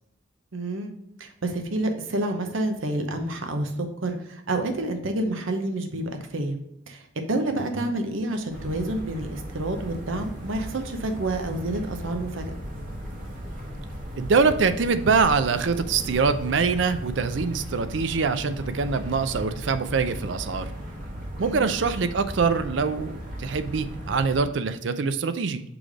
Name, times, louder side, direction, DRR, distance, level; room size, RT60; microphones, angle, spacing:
voice 1, 0.5-0.9 1.2-3.7 4.0-6.6 6.9-12.4 21.4-21.7, right 1 dB, 85° right, 6 dB, 0.8 m, -29 dB
sound 1, 8.5-24.4, equal, 45° right, 1.3 m, -37 dB
voice 2, 14.2-20.7 21.4-25.6, right 5 dB, 65° right, 11 dB, 0.5 m, -24 dB
6.1 x 3.3 x 4.8 m, 0.81 s
head